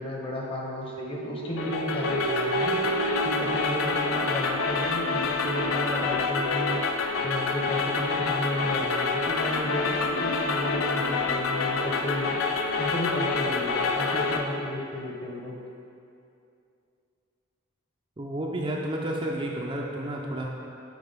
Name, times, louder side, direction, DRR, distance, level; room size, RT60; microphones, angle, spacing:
voice 1, 0.0-2.8 3.2-12.4 12.8-15.6, left 1 dB, 25° left, -2 dB, 0.9 m, -33 dB
sound 1, 0.9-4.7, right 6 dB, 85° right, 0.4 m, -34 dB
sound 2, 1.6-14.4, left 4 dB, 90° left, 0.6 m, -27 dB
voice 2, 18.2-20.4, right 1 dB, 25° right, -2 dB, 0.5 m, -31 dB
9.4 x 4.7 x 3.5 m, 2.6 s
head